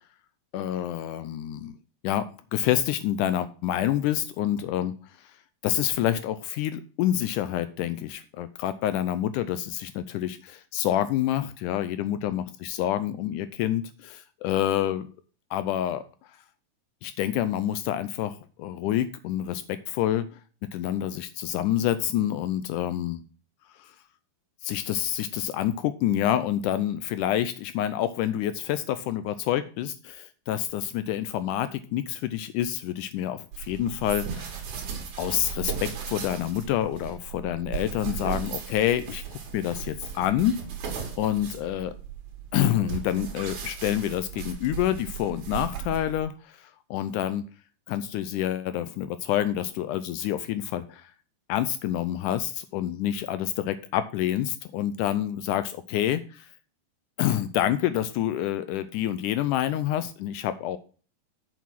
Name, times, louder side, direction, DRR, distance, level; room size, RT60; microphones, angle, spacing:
voice 1, 0.5-1.8 2.0-4.9 5.6-15.1 15.5-16.0 17.0-20.3 20.7-23.2 23.8-23.9 24.6-34.6 35.2-40.6 41.2-41.9 42.5-47.4 47.9-51.1 51.5-56.5 57.2-60.8, left 12 dB, 80° left, 12 dB, 1.9 m, -27 dB
sound 1, 33.5-46.3, right 7 dB, 65° right, 3.2 m, -36 dB
7.0 x 6.1 x 5.9 m, 0.38 s
omnidirectional pair, 4.0 m